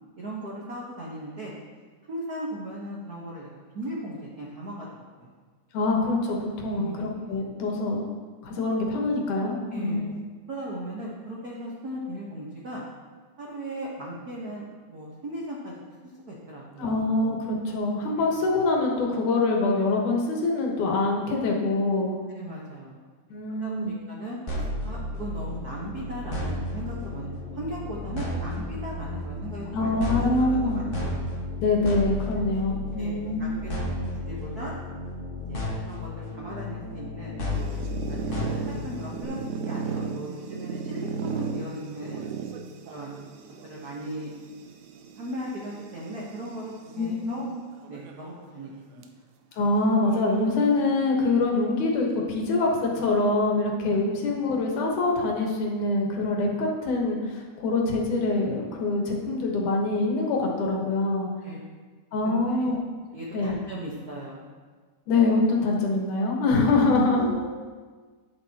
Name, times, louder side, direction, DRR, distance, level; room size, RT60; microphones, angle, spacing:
voice 1, 0.2-1.5 2.1-3.5 3.7-4.9 5.2-5.3 6.7-7.0 8.7-8.8 9.7-10.1 10.5-12.8 13.4-15.7 16.3-16.9 22.3-23.0 23.5-27.3 27.5-30.7 31.0-31.2 32.5-32.6 32.9-34.7 35.3-37.4 38.1-38.4 38.8-42.3 42.9-43.3 43.6-44.3 45.1-47.5 47.9-48.7 48.9-49.0 53.9-54.0 61.4-61.6 62.2-62.7 63.1-64.5 67.2-67.4, right 1 dB, 65° right, -4 dB, 0.9 m, -37 dB
voice 2, 5.7-8.1 8.4-10.1 16.8-22.2 23.3-23.9 29.7-30.8 31.6-33.7 47.0-47.5 49.5-61.3 62.1-62.8 63.3-63.6 65.1-67.2, left 2 dB, 80° left, 0 dB, 2.8 m, -25 dB
sound 1, 24.5-39.2, left 2 dB, 60° left, 0.5 m, -33 dB
sound 2, 37.5-47.0 47.7-48.3 48.6-48.7 49.0-49.1 50.0-51.2, right 5 dB, 90° right, 2.2 m, -36 dB
11.0 x 8.9 x 2.9 m, 1.5 s
omnidirectional pair, 3.5 m